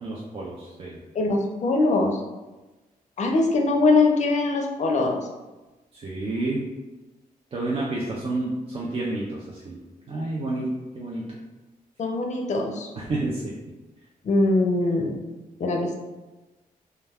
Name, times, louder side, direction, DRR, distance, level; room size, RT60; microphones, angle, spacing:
voice 1, 0.0-1.0 5.9-6.7 7.5-11.4 13.0-13.5, right 2 dB, 40° right, -4 dB, 0.4 m, -30 dB
voice 2, 1.1-2.2 3.2-5.2 12.0-12.9 14.2-15.1 15.6-16.0, left 2 dB, 50° left, 2 dB, 0.5 m, -22 dB
2.2 x 2.2 x 3.3 m, 1.1 s
cardioid pair, 90°, 15 cm